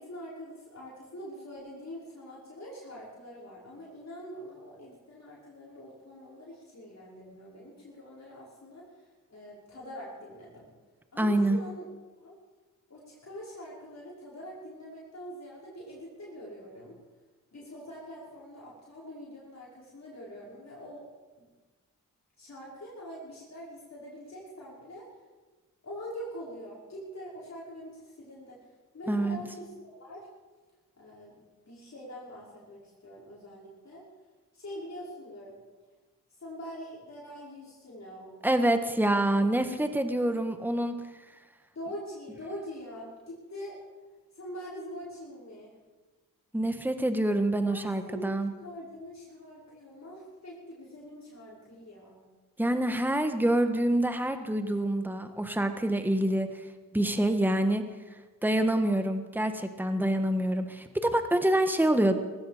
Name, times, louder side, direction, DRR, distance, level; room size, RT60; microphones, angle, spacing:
voice 1, 0.0-10.7 11.1-11.9 12.2-12.4 12.9-17.0 17.5-21.1 21.4-21.5 22.4-25.1 25.8-28.6 28.9-30.3 31.0-31.3 31.7-34.1 34.5-35.6 36.4-38.4 38.8-38.9 41.7-43.8 44.3-45.7 47.7-52.3, equal, 55° left, -6 dB, 5.6 m, -44 dB
voice 2, 11.2-11.6 29.1-29.4 38.4-41.0 46.5-48.5 52.6-56.5 56.9-57.8 58.4-62.1, right 1 dB, 5° right, 7 dB, 1.5 m, -26 dB
18.5 x 15.0 x 5.2 m, 1.3 s
cardioid pair, 65°, 33 cm